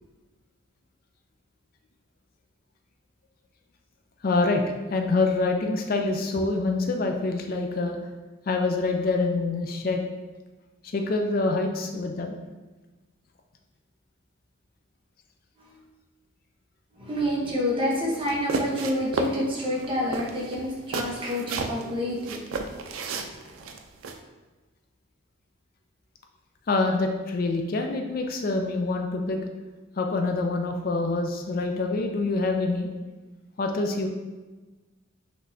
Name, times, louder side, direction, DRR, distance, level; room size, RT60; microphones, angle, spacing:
voice 1, 4.2-4.6 4.9-8.0 8.5-10.0 10.8-12.4 26.7-29.4 30.0-32.9 33.6-34.1, left 3 dB, 45° left, 3 dB, 0.4 m, -26 dB
voice 2, 17.0-22.5 23.1-23.3, left 1 dB, 25° right, -4 dB, 0.9 m, -28 dB
sound 1, 18.2-19.4 19.7-19.9 20.1-21.8 22.2-24.2, right 4 dB, 85° right, 0.4 m, -32 dB
6.0 x 3.1 x 2.7 m, 1.2 s
head